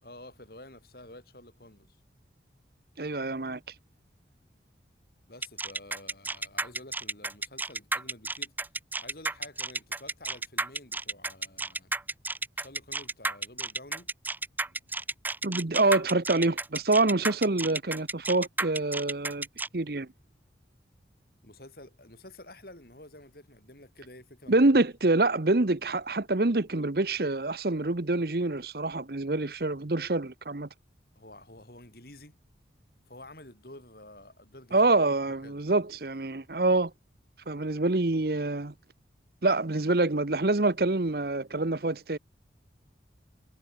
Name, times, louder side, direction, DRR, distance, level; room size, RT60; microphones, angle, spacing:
voice 1, 0.0-2.0 5.3-8.5 9.0-11.9 12.6-14.1 21.4-24.6 31.2-32.4 33.1-35.6, left 1 dB, 55° left, 6.1 m, -50 dB
voice 2, 3.0-3.6 15.4-19.5 19.7-20.1 24.5-30.7 34.7-36.9 37.5-38.7 39.4-42.2, right 2 dB, 55° right, 1.0 m, -26 dB
sound 1, 5.4-19.7, right 3 dB, 10° right, 0.7 m, -32 dB
head